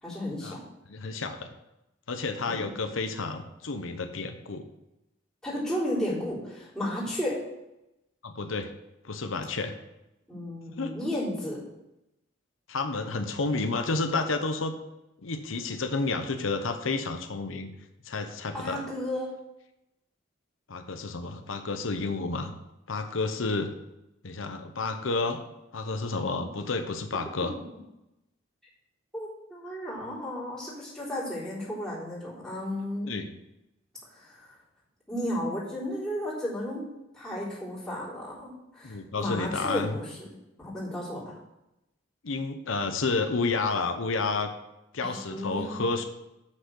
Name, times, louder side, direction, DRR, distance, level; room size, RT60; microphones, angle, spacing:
voice 1, 0.0-0.6 2.5-2.7 5.4-7.4 10.3-11.6 18.5-19.3 29.1-33.1 34.1-34.5 35.1-36.9 37.1-40.3 40.6-41.3 45.0-45.8, left 1 dB, 5° left, -8 dB, 3.6 m, -33 dB
voice 2, 0.9-1.5 2.1-4.7 8.2-8.7 9.0-9.8 10.7-10.9 12.7-14.7 15.2-17.7 18.0-18.8 20.7-22.5 22.9-23.7 24.2-25.4 25.7-27.5 33.1-33.3 38.8-39.9 42.2-44.5 44.9-46.0, left 3 dB, 90° left, 6 dB, 0.9 m, -30 dB
7.7 x 6.5 x 6.2 m, 0.90 s
head